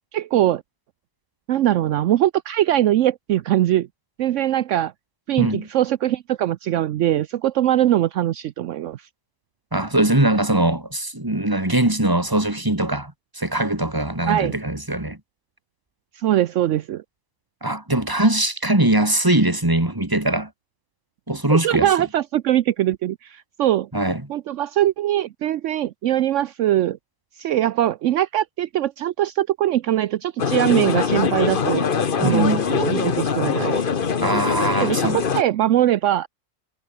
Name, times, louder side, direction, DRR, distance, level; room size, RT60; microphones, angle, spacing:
voice 1, 0.1-0.6 1.5-3.9 4.2-4.9 5.3-9.0 14.3-14.6 16.2-17.0 21.5-23.9 24.3-27.0 27.4-31.8 32.2-33.8 34.8-36.3, right 12 dB, 70° right, 1.0 m, -21 dB
voice 2, 5.4-5.7 9.7-15.2 17.6-20.5 21.3-21.9 23.9-24.3 32.2-32.7 34.2-35.2, right 1 dB, 15° right, 2.7 m, -21 dB
sound 1, 30.4-35.4, left 6 dB, 45° left, 1.2 m, -22 dB
omnidirectional pair, 1.3 m